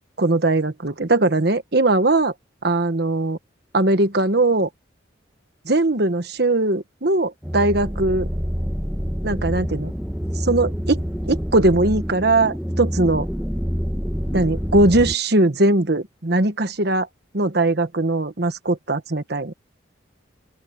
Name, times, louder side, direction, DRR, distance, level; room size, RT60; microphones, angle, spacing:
voice 1, 0.2-2.3 2.6-3.4 3.7-4.7 5.6-8.3 9.2-9.9 10.4-11.0 11.3-13.2 14.3-17.1 17.3-19.5, right 2 dB, 55° right, 1.3 m, -20 dB
sound 1, 7.4-15.1, equal, 5° right, 1.5 m, -27 dB
open air
head